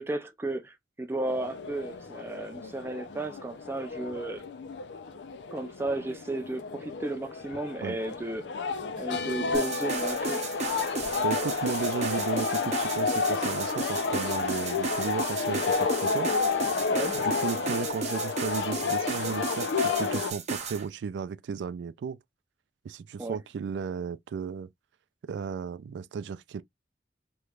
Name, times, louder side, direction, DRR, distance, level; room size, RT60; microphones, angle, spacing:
voice 1, 0.0-4.4 5.5-8.6 9.0-10.4 16.9-17.2 23.2-23.4, right 2 dB, 15° right, 0.4 m, -34 dB
sound 1, 1.3-20.3, left 4 dB, 80° left, 0.5 m, -31 dB
sound 2, 9.5-20.8, right 4 dB, 40° right, 0.8 m, -35 dB
voice 2, 11.2-16.3 17.1-22.2 22.8-24.7 25.2-26.6, right 6 dB, 80° right, 0.3 m, -34 dB
3.2 x 3.1 x 2.3 m
head